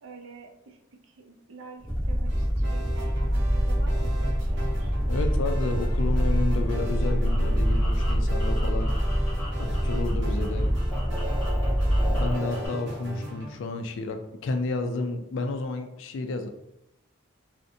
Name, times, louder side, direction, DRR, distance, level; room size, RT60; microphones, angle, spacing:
voice 1, 0.0-0.8 1.0-4.9 8.5-8.8, right 3 dB, 80° right, 4 dB, 0.4 m, -47 dB
sound 1, 1.8-12.4, equal, 30° right, 0.9 m, -25 dB
sound 2, 2.3-13.5, equal, 60° right, 0.8 m, -37 dB
voice 2, 5.1-9.0 9.6-10.7 12.2-16.5, left 3 dB, 70° left, 6 dB, 0.3 m, -31 dB
sound 3, 6.7-10.1 10.4-12.7, equal, 5° left, 0.7 m, -39 dB
2.6 x 2.1 x 2.6 m, 0.86 s
head